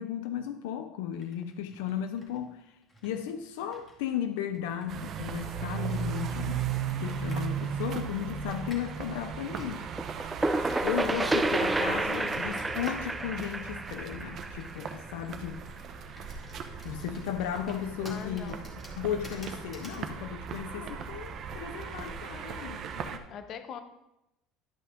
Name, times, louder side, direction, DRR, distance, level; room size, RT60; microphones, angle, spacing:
voice 1, 0.0-2.6 3.0-6.7 7.0-9.8 10.8-15.6 16.3-16.4 16.8-18.5 19.0-23.2, left 9 dB, 85° left, 0.6 m, -35 dB
Computer keyboard, 1.1-9.0 9.6-20.1, equal, 20° left, 2.2 m, -53 dB
sound 1, 4.9-23.2, right 7 dB, 45° right, 0.9 m, -37 dB
sound 2, 10.0-15.5, right 2 dB, 10° right, 0.5 m, -30 dB
voice 2, 11.0-11.3 12.0-12.6 18.0-18.6 20.7-21.1 23.3-23.8, left 7 dB, 45° left, 0.9 m, -44 dB
11.5 x 5.5 x 3.7 m
cardioid pair, 125°, 0 cm